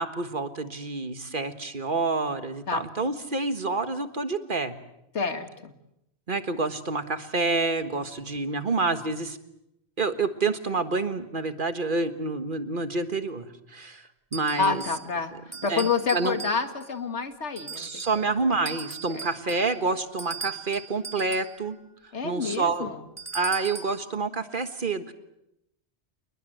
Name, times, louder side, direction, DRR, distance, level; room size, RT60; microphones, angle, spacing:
voice 1, 0.0-4.7 6.3-9.4 10.0-14.8 15.7-15.9 16.1-16.4 17.8-21.8 22.2-22.9 23.3-25.1, right 3 dB, 50° right, 10 dB, 1.6 m, -28 dB
voice 2, 5.1-5.7 14.6-18.2 19.1-19.3 22.1-23.0, left 5 dB, 85° left, 8 dB, 2.3 m, -28 dB
sound 1, 14.3-15.1 15.5-16.9 17.6-18.3 18.7-21.6 23.2-24.0, right 5 dB, 15° right, 1.9 m, -39 dB
28.0 x 21.0 x 7.9 m, 0.82 s
omnidirectional pair, 1.2 m